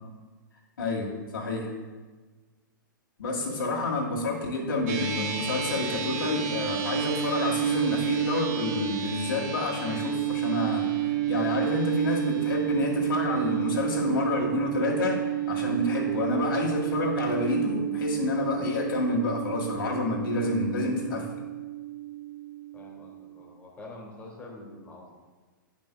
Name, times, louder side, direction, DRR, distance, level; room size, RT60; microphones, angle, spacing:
voice 1, 0.8-1.7 3.2-10.9 11.3-21.3, left 3 dB, 80° left, -2 dB, 1.8 m, -29 dB
sound 1, 4.9-23.4, right 13 dB, 50° right, 0.9 m, -31 dB
voice 2, 22.7-25.1, left 2 dB, 15° left, -2 dB, 1.4 m, -46 dB
8.5 x 5.3 x 2.3 m, 1.3 s
hypercardioid pair, 125°, 11 cm